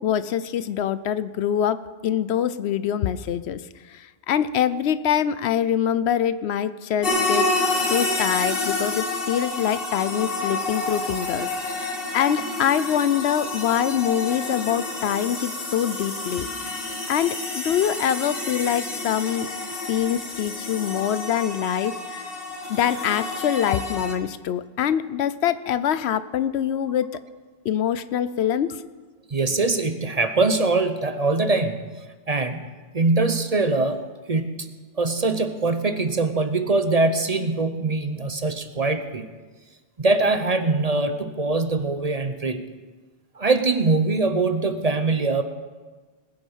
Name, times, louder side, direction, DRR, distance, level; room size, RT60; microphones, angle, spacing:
voice 1, 0.0-3.6 3.9-7.5 7.9-11.5 11.8-16.5 17.1-19.5 19.9-22.2 22.7-27.2 27.6-28.8, left 9 dB, 75° left, 15 dB, 0.9 m, -24 dB
sound 1, 7.0-24.1, left 2 dB, 55° left, 1.9 m, -29 dB
voice 2, 29.3-31.9 32.3-32.7 32.9-34.0 34.3-34.7 35.0-39.3 40.0-42.6 43.4-45.4, right 3 dB, 40° right, 9 dB, 0.8 m, -22 dB
20.0 x 9.1 x 5.6 m, 1.4 s
omnidirectional pair, 1.1 m